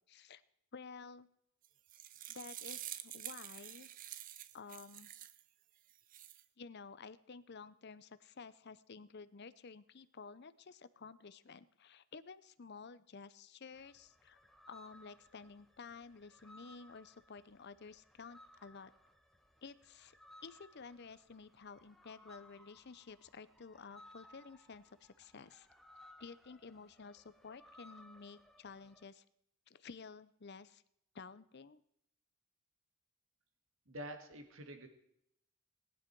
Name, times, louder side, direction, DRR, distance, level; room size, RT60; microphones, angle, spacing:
voice 1, 0.1-0.4 0.7-1.3 2.3-3.9 4.5-5.1 6.6-14.4 14.7-18.9 19.6-20.2 20.4-25.7 26.2-29.2 29.7-30.8 31.1-31.8, left 5 dB, 50° left, 15 dB, 0.6 m, -52 dB
sound 1, 1.6-5.4 5.9-6.4, right 12 dB, 35° right, 0.5 m, -48 dB
sound 2, 13.7-29.0, left 1 dB, ahead, 0.8 m, -62 dB
voice 2, 33.9-34.9, equal, 60° right, 6 dB, 1.8 m, -47 dB
19.0 x 10.0 x 4.6 m, 0.76 s
head